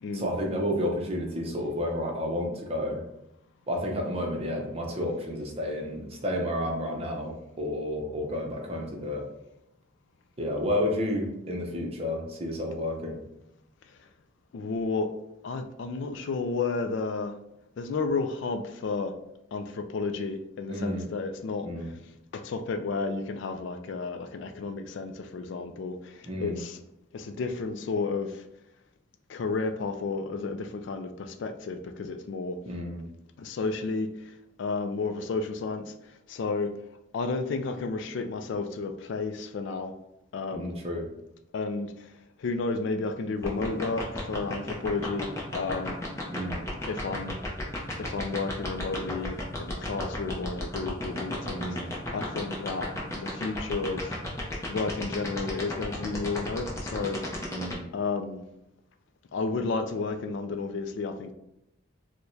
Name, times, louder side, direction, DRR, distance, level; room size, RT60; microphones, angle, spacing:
voice 1, 0.1-3.0 3.7-9.2 10.4-13.2 20.7-21.1 21.6-21.9 26.2-26.6 32.7-33.1 40.5-41.1 46.3-46.6 51.5-51.9 57.5-57.8, left 1 dB, 30° right, 0 dB, 0.6 m, -31 dB
voice 2, 14.5-15.1 15.4-17.3 17.8-19.1 19.5-21.7 22.3-26.8 27.1-28.4 29.3-32.6 33.4-34.3 34.6-35.9 36.3-36.7 37.1-39.9 40.3-40.8 41.5-41.9 42.4-46.0 46.9-47.4 48.0-54.2 54.7-57.2 57.9-58.4 59.3-61.3, left 4 dB, 60° left, 7 dB, 0.3 m, -32 dB
sound 1, 43.4-57.7, left 1 dB, 15° left, 0.6 m, -33 dB
4.5 x 2.1 x 2.7 m, 0.85 s
head